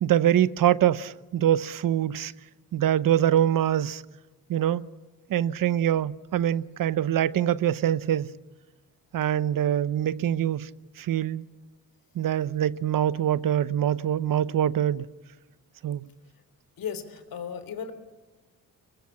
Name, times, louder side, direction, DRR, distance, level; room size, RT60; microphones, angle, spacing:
voice 1, 0.0-2.3 2.7-4.0 4.5-4.8 5.3-8.3 9.1-10.7 11.0-11.5 12.2-15.1 15.8-16.1, right 11 dB, 65° right, 0.9 m, -24 dB
voice 2, 16.8-17.9, left 7 dB, 70° left, 3.8 m, -35 dB
27.0 x 23.5 x 8.7 m
cardioid pair, 115°, 36 cm